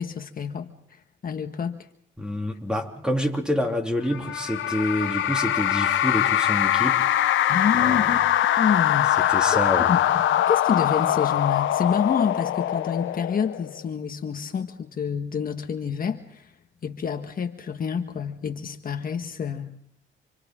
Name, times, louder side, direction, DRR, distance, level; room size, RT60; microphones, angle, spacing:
voice 1, 0.0-1.9 7.5-8.2 8.6-16.5 16.8-19.7, left 7 dB, 45° left, 5 dB, 1.6 m, -28 dB
voice 2, 2.2-7.1 7.8-8.1 9.2-9.9, left 1 dB, 5° right, 3 dB, 3.2 m, -27 dB
sound 1, 4.1-13.8, left 12 dB, 75° left, 1.1 m, -23 dB
29.5 x 25.5 x 3.8 m, 0.63 s
cardioid pair, 90°, 20 cm